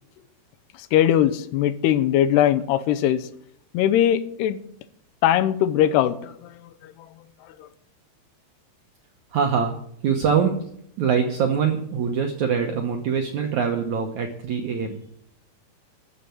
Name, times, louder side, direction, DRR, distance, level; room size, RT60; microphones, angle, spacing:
voice 1, 0.9-3.2 3.7-4.6 5.2-6.3, left 11 dB, 90° left, 13 dB, 2.8 m, -20 dB
voice 2, 9.3-9.8 10.0-10.5 11.0-15.0, right 6 dB, 70° right, 4 dB, 1.8 m, -23 dB
14.0 x 6.9 x 9.2 m, 0.69 s
omnidirectional pair, 4.7 m